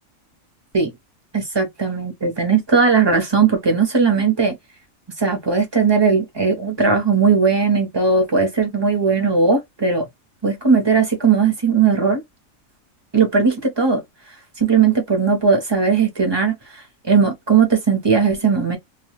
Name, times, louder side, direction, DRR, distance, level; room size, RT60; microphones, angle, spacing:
voice 1, 1.3-4.6 5.2-10.0 10.4-12.2 13.1-14.0 14.6-16.6 17.1-18.8, right 5 dB, 25° right, 0.7 m, -18 dB
2.4 x 2.2 x 3.1 m
omnidirectional pair, 1.4 m